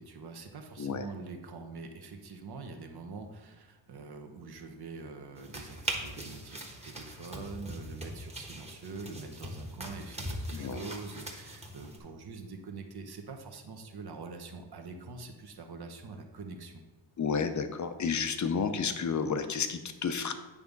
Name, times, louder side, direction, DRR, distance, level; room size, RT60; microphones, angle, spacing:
voice 1, 0.0-16.8, right 4 dB, 55° right, 4 dB, 1.0 m, -44 dB
sound 1, 5.4-12.0, right 1 dB, 15° right, 1.2 m, -41 dB
voice 2, 17.2-20.3, left 6 dB, 40° left, 9 dB, 0.7 m, -31 dB
8.6 x 3.5 x 5.3 m, 1.2 s
cardioid pair, 100°, 47 cm